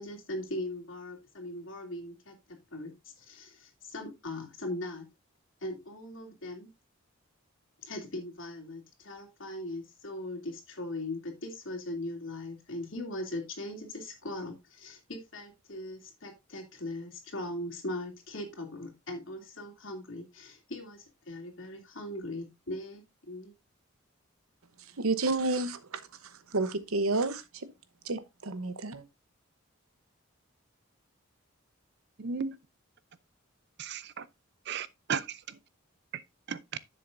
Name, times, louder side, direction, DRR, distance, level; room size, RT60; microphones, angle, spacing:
voice 1, 0.0-5.1 5.6-6.7 7.8-23.5, left 1 dB, 65° left, 2.8 m, -40 dB
voice 2, 25.0-27.7 28.0-29.0, right 3 dB, 90° right, 1.0 m, -31 dB
voice 3, 32.2-32.6 33.8-34.3 34.7-35.6 36.5-36.8, right 6 dB, 50° right, 0.5 m, -35 dB
10.5 x 7.5 x 2.6 m
head